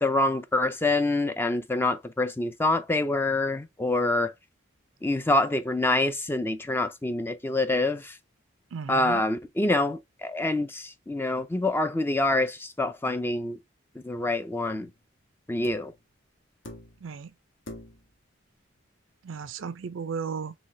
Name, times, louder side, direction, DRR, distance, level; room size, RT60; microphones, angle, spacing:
voice 1, 0.0-4.3 5.0-8.2 8.9-13.6 14.0-14.9 15.5-15.9, left 2 dB, 10° left, 0.4 m, -26 dB
voice 2, 8.7-9.2 17.0-17.3 19.2-20.5, right 6 dB, 85° right, 0.5 m, -35 dB
sound 1, 14.7-15.0 15.6-16.0 16.6-17.2 17.7-18.2 19.5-19.6, left 1 dB, 75° left, 1.5 m, -45 dB
4.2 x 3.3 x 3.2 m
head